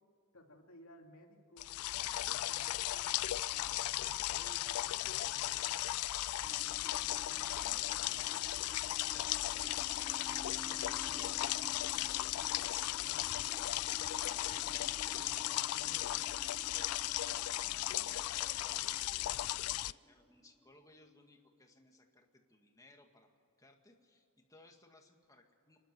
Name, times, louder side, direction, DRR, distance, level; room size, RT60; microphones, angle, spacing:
voice 1, 0.3-5.9 6.5-9.6 10.1-11.3 11.6-16.2, left 1 dB, 70° left, 2 dB, 2.7 m, -59 dB
sound 1, 1.6-19.9, left 14 dB, 90° left, 0.4 m, -36 dB
sound 2, 6.4-21.1, right 1 dB, ahead, 0.6 m, -55 dB
voice 2, 17.6-25.8, left 2 dB, 15° left, 3 dB, 2.0 m, -62 dB
29.0 x 11.5 x 7.7 m, 2.6 s
head